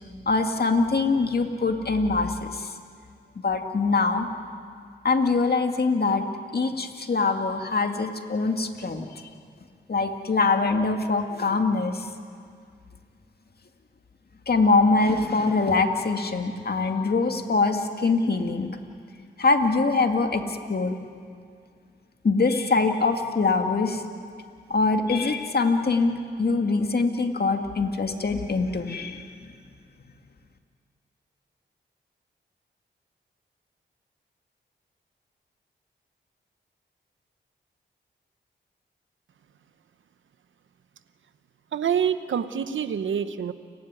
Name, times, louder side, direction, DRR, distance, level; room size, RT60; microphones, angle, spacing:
voice 1, 0.3-2.7 3.4-4.3 5.0-6.2 6.5-9.1 9.9-12.1 14.5-18.8 19.4-21.0 22.2-24.0 24.7-29.3, left 3 dB, 55° left, 5 dB, 2.2 m, -23 dB
voice 2, 41.7-43.5, right 8 dB, 85° right, 12 dB, 0.9 m, -26 dB
30.0 x 12.0 x 9.6 m, 2.2 s
cardioid pair, 50°, 20 cm